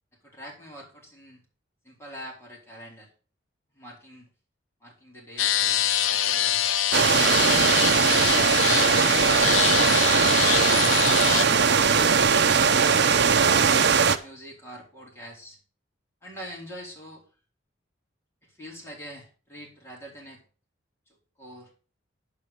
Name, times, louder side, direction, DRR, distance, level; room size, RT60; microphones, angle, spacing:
voice 1, 0.2-1.4 1.8-3.1 3.7-4.3 4.8-6.6 13.0-15.6 16.2-17.2 18.4-20.4 21.1-21.7, equal, 15° left, -3 dB, 4.4 m, -44 dB
sound 1, 5.4-11.4, left 10 dB, 90° left, 0.5 m, -25 dB
sound 2, 6.9-14.2, right 6 dB, 60° right, 0.8 m, -20 dB
10.5 x 4.9 x 7.3 m, 0.37 s
head